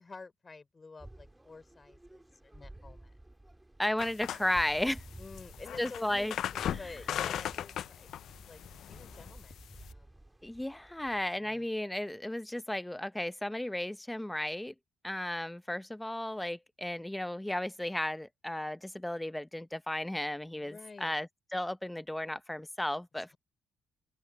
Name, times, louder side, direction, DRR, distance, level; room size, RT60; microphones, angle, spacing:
voice 1, 0.0-3.1 5.2-8.1 8.5-10.1 11.4-11.7 20.5-21.2, left 4 dB, 30° left, 5.3 m, -50 dB
sound 1, 1.0-11.3, right 1 dB, 10° right, 2.3 m, -53 dB
voice 2, 3.8-5.0 5.8-6.3 6.7-6.8 10.4-14.7 15.0-23.3, left 1 dB, 5° left, 0.7 m, -34 dB
sound 2, 4.0-9.9, left 10 dB, 70° left, 0.4 m, -38 dB
open air
cardioid pair, 90°, 0 cm